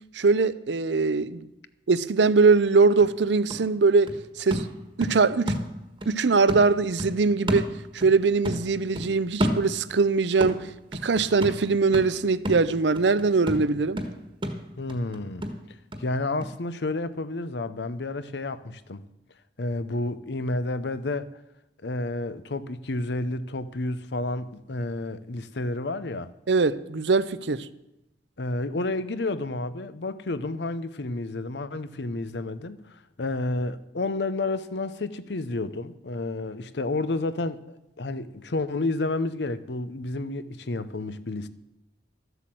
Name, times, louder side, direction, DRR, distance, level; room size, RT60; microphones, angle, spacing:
voice 1, 0.1-1.4 1.9-4.1 4.4-4.7 5.0-5.5 6.1-10.7 11.0-14.0 26.5-27.7, right 4 dB, 75° right, 0.6 m, -22 dB
sound 1, 2.5-2.6 3.0-6.2 6.5-8.2 8.4-10.1 10.4-16.1 16.4-16.5, equal, 30° right, 1.4 m, -32 dB
voice 2, 14.8-15.4 16.0-19.0 19.6-21.3 21.8-26.3 28.4-37.6 38.0-41.5, left 2 dB, 70° left, 0.8 m, -30 dB
13.5 x 8.1 x 7.6 m
head